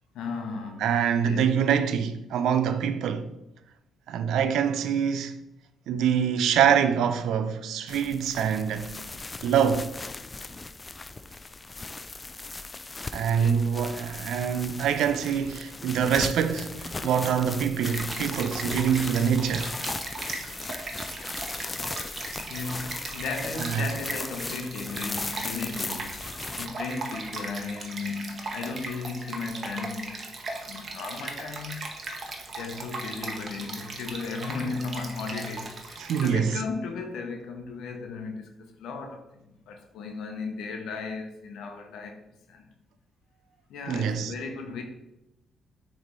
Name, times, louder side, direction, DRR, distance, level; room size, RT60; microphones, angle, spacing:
voice 1, 0.1-0.9 1.2-1.5 13.3-13.7 22.4-30.3 30.7-31.9 32.6-42.6 43.7-44.8, left 4 dB, 80° left, 0.8 m, -36 dB
voice 2, 0.8-3.3 4.1-5.3 5.9-8.9 9.4-9.9 13.1-19.7 23.6-23.9 36.0-36.6 43.9-44.3, right 8 dB, 80° right, 0.5 m, -25 dB
sound 1, 7.9-26.7, left 3 dB, 25° left, 0.4 m, -37 dB
Stream, 17.8-36.3, right 3 dB, 45° right, 1.1 m, -38 dB
6.6 x 3.3 x 4.6 m
cardioid pair, 90°, 0 cm